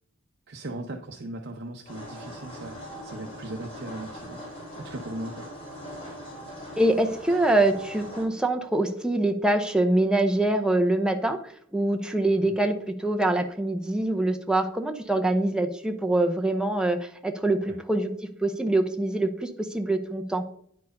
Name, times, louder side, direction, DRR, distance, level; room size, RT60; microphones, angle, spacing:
voice 1, 0.5-4.4 4.8-5.5 12.4-12.6 17.6-17.8, right 1 dB, 55° right, 2 dB, 0.7 m, -38 dB
sound 1, 1.9-8.2, equal, 30° left, 2.8 m, -41 dB
voice 2, 6.8-18.1 18.4-20.4, right 2 dB, 5° right, 4 dB, 0.6 m, -24 dB
9.5 x 4.6 x 5.2 m, 0.65 s
head